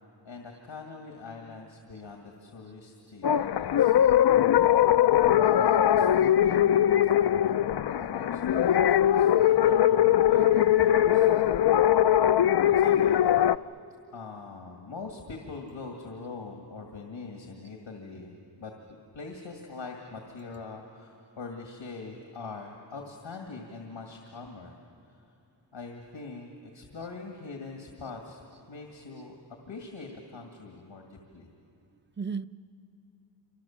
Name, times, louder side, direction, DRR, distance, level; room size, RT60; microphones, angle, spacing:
voice 1, 0.2-4.0 5.4-11.3 12.6-13.5 14.1-18.3 18.6-18.7 19.1-24.8 25.0-25.2 25.7-28.4 28.7-29.4 29.7-31.5, left 4 dB, 85° left, 1 dB, 2.2 m, -43 dB
sound 1, 3.2-13.6, left 11 dB, 60° left, 0.5 m, -21 dB
voice 2, 6.4-7.0 32.2-32.5, right 5 dB, 25° right, 13 dB, 0.6 m, -37 dB
28.0 x 26.0 x 7.3 m, 2.7 s
cardioid pair, 55°, 45 cm